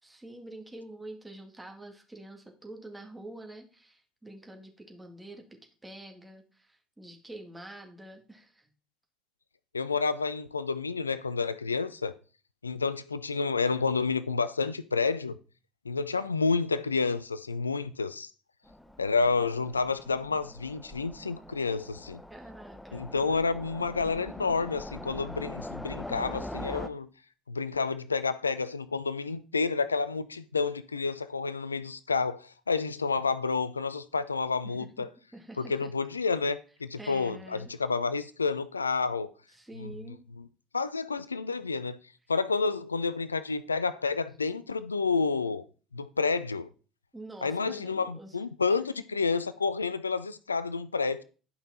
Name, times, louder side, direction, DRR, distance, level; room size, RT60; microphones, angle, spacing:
voice 1, 0.0-8.7 22.3-23.1 35.0-35.1 35.3-35.9 37.0-37.7 39.5-40.3 47.1-48.4, right 1 dB, 10° right, 2.0 m, -47 dB
voice 2, 9.7-12.1 12.6-15.3 15.9-18.3 19.0-22.2 22.9-27.1 27.5-35.1 35.6-39.3 39.8-39.9 40.7-42.0 42.3-45.6 45.9-46.7 47.4-51.2, left 4 dB, 85° left, 0.3 m, -29 dB
Train, 18.7-26.9, left 1 dB, 5° left, 0.7 m, -42 dB
10.5 x 5.5 x 4.2 m
figure-of-eight pair, 60°, 0 cm